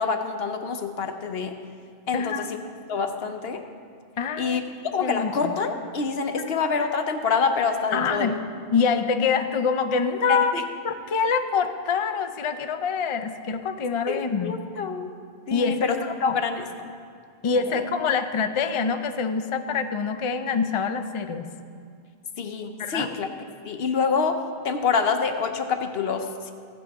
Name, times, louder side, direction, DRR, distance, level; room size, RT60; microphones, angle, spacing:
voice 1, 0.0-1.5 2.1-2.6 2.9-3.6 4.4-8.4 10.3-10.6 14.1-15.1 15.5-16.0 16.2-16.9 17.7-17.8 22.4-23.3 23.6-24.4 24.6-26.5, left 5 dB, 65° left, 7 dB, 1.0 m, -26 dB
voice 2, 2.1-2.5 4.2-4.6 5.0-5.5 6.4-6.6 7.9-8.4 8.7-10.5 10.8-14.5 15.5-16.4 17.4-21.5 22.8-23.1, left 5 dB, 45° left, 8 dB, 0.4 m, -25 dB
15.5 x 9.0 x 3.5 m, 2.3 s
omnidirectional pair, 1.1 m